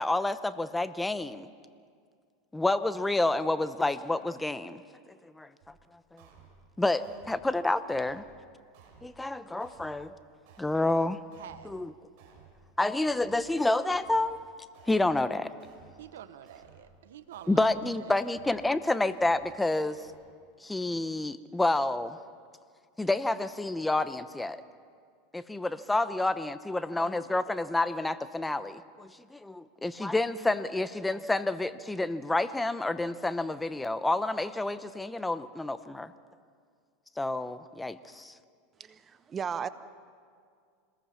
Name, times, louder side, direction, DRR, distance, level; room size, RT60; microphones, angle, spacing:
voice 1, 0.0-1.5 2.5-4.8 5.4-5.5 6.1-6.2 6.8-8.2 9.0-10.1 10.6-11.2 11.6-11.9 12.8-14.4 14.9-15.5 17.5-20.0 20.6-22.2 23.0-24.6 25.3-36.1 37.2-38.3, left 2 dB, 5° left, 13 dB, 0.8 m, -29 dB
sound 1, 5.6-5.7 6.2-6.6 7.0-7.4 7.9-8.3 8.7-9.2 9.6-10.0 10.5-10.9 11.3-11.7 12.2-12.6 13.0-13.5 13.9-14.3 14.7-15.2 15.6-16.0 16.5-16.9 17.3-17.7 18.2-18.6 19.0-19.4 19.9-20.2, right 6 dB, 60° right, 5.8 m, -56 dB
voice 2, 11.4-11.8 16.0-18.2, right 11 dB, 90° right, 11 dB, 0.9 m, -48 dB
voice 3, 38.8-39.7, right 7 dB, 25° right, 13 dB, 0.8 m, -35 dB
26.5 x 20.0 x 5.8 m, 2.2 s
supercardioid pair, 125°, 0 cm